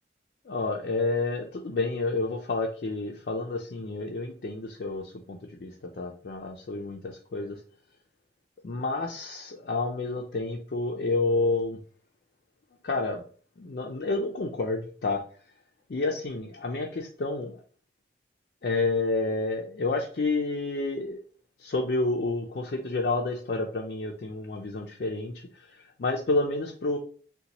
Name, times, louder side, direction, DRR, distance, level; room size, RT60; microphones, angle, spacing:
voice 1, 0.5-7.6 8.6-11.8 12.8-13.2 13.6-15.2 15.9-17.6 18.6-21.2 21.6-27.0, left 3 dB, 55° left, 1 dB, 0.4 m, -29 dB
2.8 x 2.2 x 4.0 m, 0.42 s
head